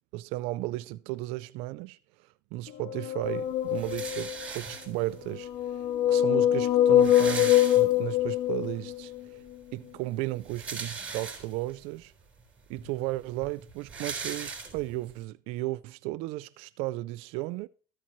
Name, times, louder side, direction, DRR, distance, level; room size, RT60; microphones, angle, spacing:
voice 1, 0.1-9.4 9.7-12.1 12.7-17.7, right 18 dB, 75° right, 0.4 m, -35 dB
sound 1, 2.8-4.5 5.3-9.2, left 11 dB, 75° left, 0.4 m, -24 dB
sound 2, 3.8-5.2 6.1-6.2 6.4-6.5 6.7-8.3 8.7-8.8 10.2-11.8 12.4-12.5 12.8-15.1, right 5 dB, 10° right, 3.9 m, -39 dB
13.5 x 8.6 x 3.1 m
cardioid pair, 140°, 10 cm